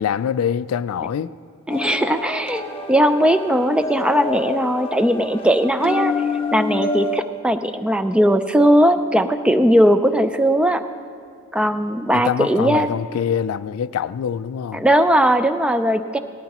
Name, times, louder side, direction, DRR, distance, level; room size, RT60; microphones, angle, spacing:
voice 1, 0.0-1.3 12.1-14.8, left 8 dB, 80° left, 0.3 m, -24 dB
sound 1, 1.7-7.2, left 3 dB, 25° left, 0.7 m, -27 dB
voice 2, 1.7-2.6 2.9-6.1 6.5-10.8 11.5-12.9 14.7-16.2, equal, 5° right, 0.3 m, -18 dB
17.5 x 13.0 x 3.0 m
head